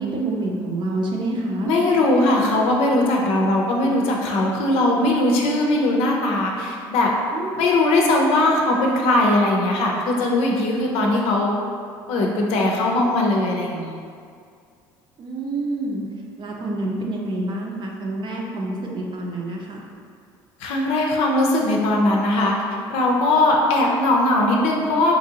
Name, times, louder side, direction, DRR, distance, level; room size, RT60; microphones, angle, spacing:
voice 1, 0.0-1.7 7.3-7.7 15.2-16.0 16.4-19.8, right 2 dB, 45° right, -1 dB, 0.7 m, -27 dB
voice 2, 1.6-7.1 7.6-11.5 12.1-14.0 20.6-22.5 22.9-25.2, left 2 dB, 75° left, 0 dB, 0.6 m, -19 dB
4.0 x 2.7 x 2.8 m, 2.2 s
supercardioid pair, 75°, 11 cm